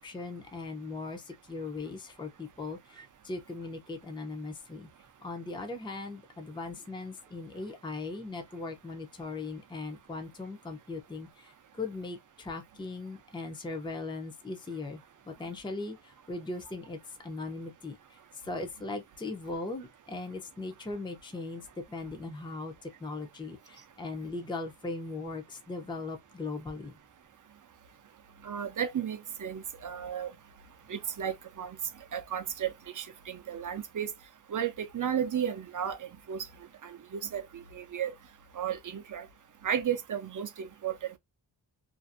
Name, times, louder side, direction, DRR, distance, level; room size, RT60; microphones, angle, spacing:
voice 1, 0.0-4.9 5.2-15.0 15.3-18.2 18.4-27.0, left 3 dB, 10° left, 0.5 m, -39 dB
voice 2, 28.4-30.3 30.9-31.8 32.1-34.1 34.5-36.4 36.8-38.1 38.6-39.3 39.6-41.2, right 9 dB, 45° right, 0.5 m, -34 dB
2.6 x 2.5 x 2.4 m
wide cardioid pair, 110°, 47 cm